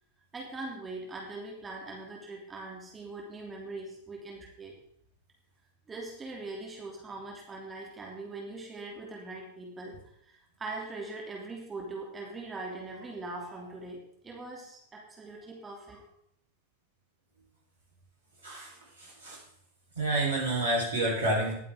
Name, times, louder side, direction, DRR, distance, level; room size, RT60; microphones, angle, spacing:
voice 1, 0.3-4.7 5.9-10.0 10.2-16.1, right 2 dB, 15° right, -1 dB, 3.3 m, -41 dB
voice 2, 18.4-19.4 19.9-21.5, right 2 dB, 70° right, -2 dB, 4.4 m, -29 dB
20.0 x 7.5 x 3.7 m, 0.70 s
figure-of-eight pair, 90°, 0 cm